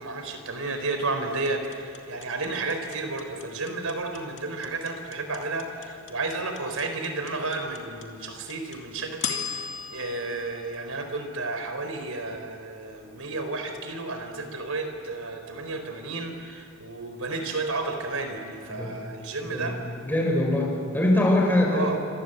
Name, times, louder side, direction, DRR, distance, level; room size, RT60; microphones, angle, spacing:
voice 1, 0.0-19.8 21.7-22.0, right 3 dB, 75° right, 6 dB, 4.1 m, -32 dB
sound 1, 1.5-11.6, left 7 dB, 60° left, 2.5 m, -37 dB
voice 2, 20.0-22.0, left 1 dB, 10° left, -1 dB, 6.3 m, -23 dB
27.5 x 26.0 x 7.9 m, 2.4 s
head